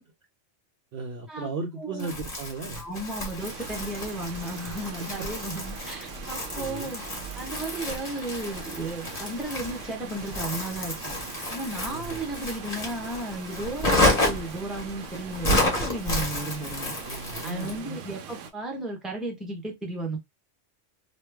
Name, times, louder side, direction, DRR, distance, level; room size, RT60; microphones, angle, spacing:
voice 1, 0.9-2.8 5.0-5.3 6.6-6.9 11.9-12.2 13.9-14.0 17.0-18.0, right 3 dB, 60° right, 0.7 m, -36 dB
voice 2, 1.8-2.2 2.7-7.0 7.4-11.1 11.5-16.9 17.4-20.2, right 2 dB, ahead, 0.8 m, -34 dB
Crumpling crinkling, 2.0-17.8, left 1 dB, 35° left, 1.3 m, -30 dB
Water, 3.4-18.5, right 6 dB, 80° right, 0.9 m, -42 dB
3.1 x 2.3 x 3.3 m
omnidirectional pair, 1.3 m